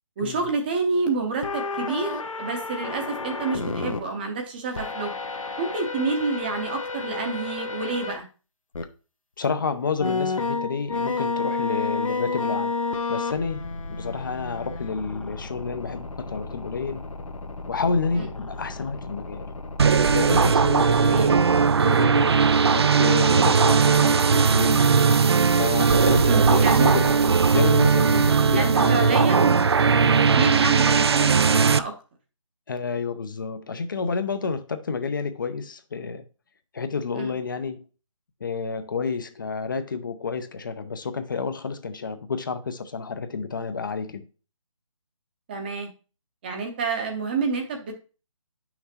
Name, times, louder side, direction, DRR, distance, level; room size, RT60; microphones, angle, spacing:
voice 1, 0.2-5.1 5.6-8.3 18.2-18.3 21.0-21.3 26.3-26.9 28.5-29.6 30.2-31.9 37.1-37.4 45.5-45.9 46.4-47.9, right 4 dB, 20° right, 0.8 m, -28 dB
sound 1, 1.4-4.0 4.8-8.2 8.7-8.8 10.0-21.2, left 3 dB, 80° left, 1.1 m, -31 dB
voice 2, 9.4-12.7 13.1-13.6 13.9-17.1 17.7-19.5 20.1-21.5 21.8-22.3 22.7-24.9 25.6-29.3 32.7-36.2 36.7-37.8 38.4-44.3, left 5 dB, 40° left, 0.7 m, -29 dB
sound 2, 19.8-31.8, right 5 dB, 50° right, 0.4 m, -18 dB
9.1 x 5.9 x 2.8 m
figure-of-eight pair, 160°, 17 cm